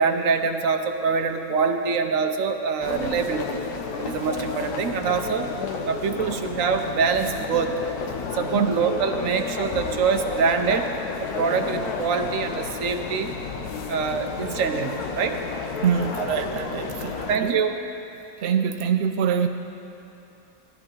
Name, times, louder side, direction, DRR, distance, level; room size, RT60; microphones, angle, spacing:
voice 1, 0.0-3.6 4.0-5.5 5.9-7.8 8.3-10.9 11.2-13.3 13.9-15.4 17.3-17.7, right 5 dB, 60° right, 5 dB, 1.0 m, -24 dB
sound 1, 2.8-17.4, left 5 dB, 65° left, 1.3 m, -32 dB
voice 2, 15.8-17.6 18.4-19.5, right 7 dB, 80° right, 6 dB, 0.5 m, -24 dB
16.5 x 13.5 x 3.8 m, 3.0 s
omnidirectional pair, 1.9 m